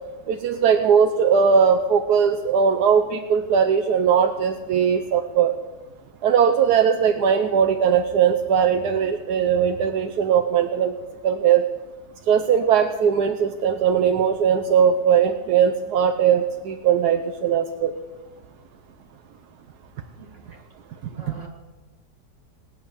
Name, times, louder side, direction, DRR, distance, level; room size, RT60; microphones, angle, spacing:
voice 1, 0.3-5.5 6.2-10.9 11.2-11.6 12.3-17.9, right 7 dB, 70° right, 5 dB, 1.3 m, -19 dB
voice 2, 20.2-20.6 21.1-21.5, right 4 dB, 45° right, 1 dB, 2.1 m, -44 dB
19.5 x 9.4 x 7.2 m, 1.2 s
omnidirectional pair, 1.8 m